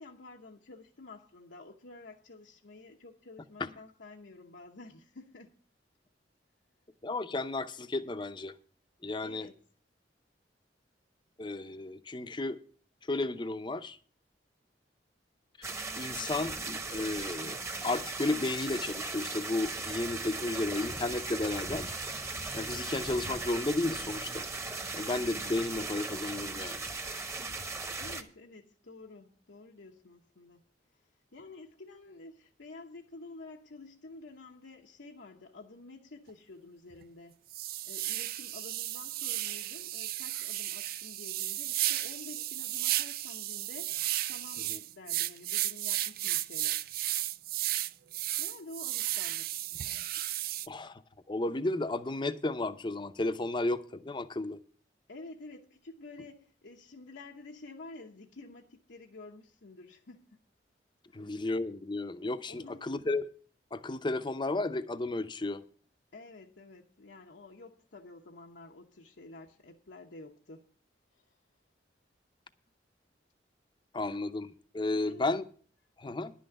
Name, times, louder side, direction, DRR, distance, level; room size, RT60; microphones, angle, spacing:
voice 1, 0.0-5.5 9.2-9.6 28.0-30.6 31.3-37.4 37.8-43.9 44.3-46.9 48.4-49.6 55.1-60.3 61.1-61.3 62.5-62.9 66.1-70.6 74.9-75.2, left 2 dB, 85° left, 1.0 m, -50 dB
voice 2, 7.0-8.5 9.0-9.5 11.4-12.6 13.1-14.0 15.6-21.9 22.5-24.5 24.9-26.8 44.7-44.8 50.7-51.0 51.3-54.6 61.1-63.3 63.7-65.6 73.9-75.4 76.0-76.3, left 2 dB, 25° left, 0.6 m, -33 dB
sound 1, 15.6-28.2, right 3 dB, 15° right, 1.0 m, -38 dB
sound 2, 36.3-36.4 36.9-37.0 37.5-50.7, right 14 dB, 55° right, 0.4 m, -34 dB
11.0 x 6.3 x 7.8 m
head